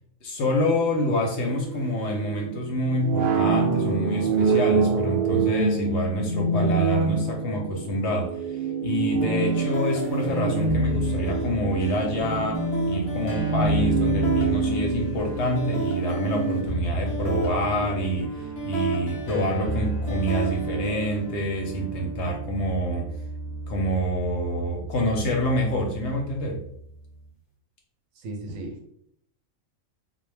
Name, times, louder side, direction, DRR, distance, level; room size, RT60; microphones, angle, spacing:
voice 1, 0.2-12.6 12.9-23.1 23.7-26.6, equal, 65° left, 1 dB, 0.8 m, -27 dB
sound 1, 1.3-16.6, right 4 dB, 60° right, 0.5 m, -26 dB
sound 2, 9.2-27.2, right 2 dB, 45° left, 0.4 m, -31 dB
voice 2, 28.2-28.9, right 1 dB, 80° right, 3 dB, 1.0 m, -36 dB
2.2 x 2.1 x 3.2 m, 0.69 s
omnidirectional pair, 1.4 m